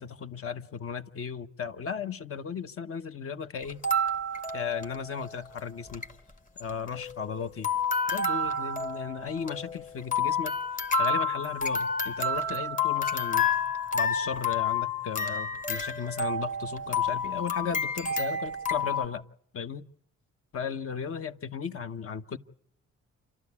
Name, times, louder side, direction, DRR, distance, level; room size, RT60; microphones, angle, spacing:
voice 1, 0.0-3.8 4.5-6.1 6.6-7.7 8.1-10.5 11.0-13.5 13.9-19.2 19.5-19.8 20.5-22.4, left 6 dB, 50° left, 1.0 m, -35 dB
sound 1, 3.6-5.3 5.6-5.7 5.9-6.1 6.6-7.4 7.6-19.1, left 3 dB, 25° left, 1.2 m, -29 dB
28.0 x 12.0 x 8.4 m
cardioid pair, 90°, 30 cm